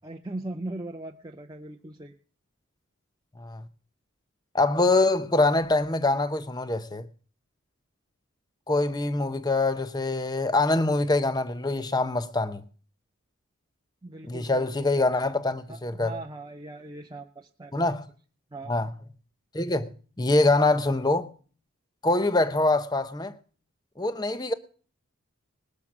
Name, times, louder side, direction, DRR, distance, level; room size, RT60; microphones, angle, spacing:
voice 1, 0.0-2.1 14.0-14.7 15.7-17.9 18.5-18.8, right 2 dB, 20° right, 0.6 m, -39 dB
voice 2, 4.5-7.1 8.7-12.6 14.2-16.2 17.7-18.1 18.7-18.9 19.5-19.9 20.2-21.3 22.0-23.4 24.0-24.5, left 2 dB, 20° left, 0.7 m, -24 dB
20.0 x 6.8 x 6.0 m
head